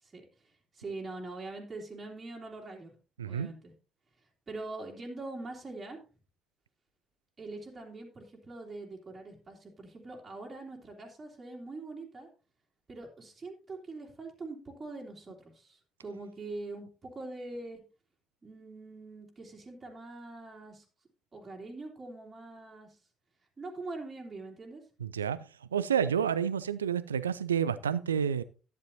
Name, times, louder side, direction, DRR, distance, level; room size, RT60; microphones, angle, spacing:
voice 1, 0.0-2.9 3.2-3.7 4.5-6.0 7.4-12.3 12.9-17.8 18.4-20.8 21.3-23.0 23.6-24.8, right 2 dB, 30° right, 2.9 m, -43 dB
voice 2, 3.2-3.5 25.0-25.5 25.7-28.4, right 8 dB, 80° right, 0.4 m, -29 dB
12.0 x 10.0 x 2.8 m
figure-of-eight pair, 45°, 0 cm